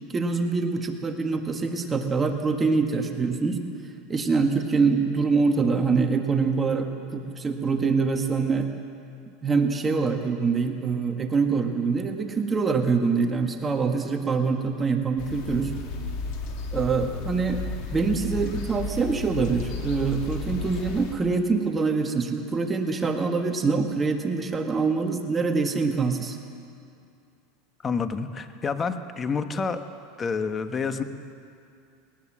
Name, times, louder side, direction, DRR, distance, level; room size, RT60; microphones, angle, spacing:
voice 1, 0.1-3.6 4.1-8.7 9.4-15.7 16.7-17.6 17.9-26.4, right 4 dB, 20° right, 4 dB, 1.6 m, -25 dB
sound 1, 15.2-21.1, left 3 dB, 60° left, 3.0 m, -33 dB
voice 2, 27.8-29.8 30.2-31.0, left 5 dB, 25° left, 9 dB, 1.2 m, -28 dB
20.5 x 19.5 x 7.5 m, 2.5 s
supercardioid pair, 125°, 0 cm